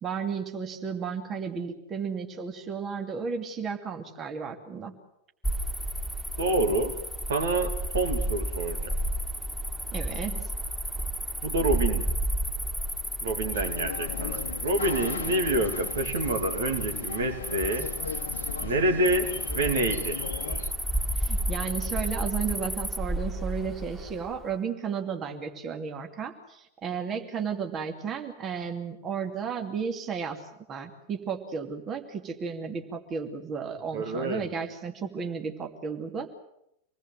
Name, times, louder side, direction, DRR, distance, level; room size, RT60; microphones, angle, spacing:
voice 1, 0.0-4.9 9.9-10.5 21.1-30.4 30.7-36.3, right 6 dB, 25° right, 4 dB, 2.6 m, -33 dB
Cricket, 5.4-24.4, equal, ahead, 2.9 m, -32 dB
voice 2, 6.4-6.9 7.3-8.9 11.4-12.0 13.2-17.9 18.6-20.2 33.9-34.4, right 2 dB, 65° right, 5 dB, 2.6 m, -27 dB
sound 1, 13.5-20.7, left 5 dB, 70° left, 1.2 m, -37 dB
27.0 x 19.5 x 7.9 m, 0.79 s
figure-of-eight pair, 90°, 0 cm